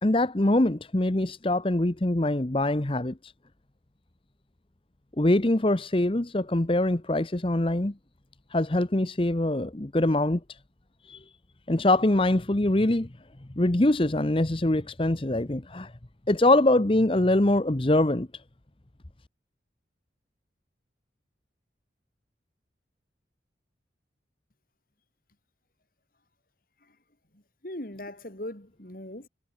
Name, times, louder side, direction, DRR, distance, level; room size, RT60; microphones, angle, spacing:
voice 1, 0.0-3.3 5.2-7.9 8.5-10.4 11.0-11.2 11.7-13.1 13.6-15.9 16.3-18.3, left 1 dB, 30° left, 0.9 m, -23 dB
voice 2, 27.3-29.3, left 1 dB, 50° left, 3.2 m, -40 dB
head